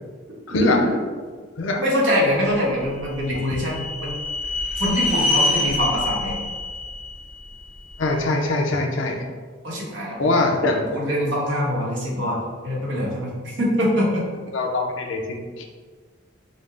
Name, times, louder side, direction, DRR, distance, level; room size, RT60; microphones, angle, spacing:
voice 1, 0.5-1.0 1.8-4.2 4.7-6.5 9.6-10.3 10.9-12.4 12.6-14.2, equal, 65° right, -4 dB, 1.1 m, -24 dB
sound 1, 2.8-8.0, left 2 dB, 35° left, 1.0 m, -26 dB
voice 2, 8.0-9.2 10.2-10.9 14.5-15.6, left 2 dB, 75° left, 1 dB, 0.6 m, -22 dB
5.2 x 2.1 x 3.4 m, 1.5 s
head